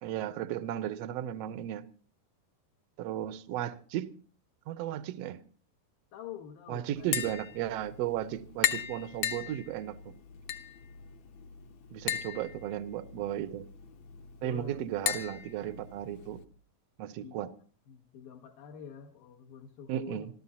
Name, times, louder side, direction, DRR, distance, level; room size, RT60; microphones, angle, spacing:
voice 1, 0.0-1.9 3.0-4.1 4.7-5.4 6.7-10.1 11.9-13.7 14.4-16.4 17.0-17.5 19.9-20.3, right 12 dB, 80° right, 1.4 m, -35 dB
voice 2, 6.1-7.1 14.4-14.8 17.2-17.5 17.9-20.3, left 8 dB, 80° left, 3.0 m, -46 dB
Tap, 7.0-16.4, left 10 dB, 65° left, 1.8 m, -37 dB
27.5 x 13.0 x 2.8 m
omnidirectional pair, 4.0 m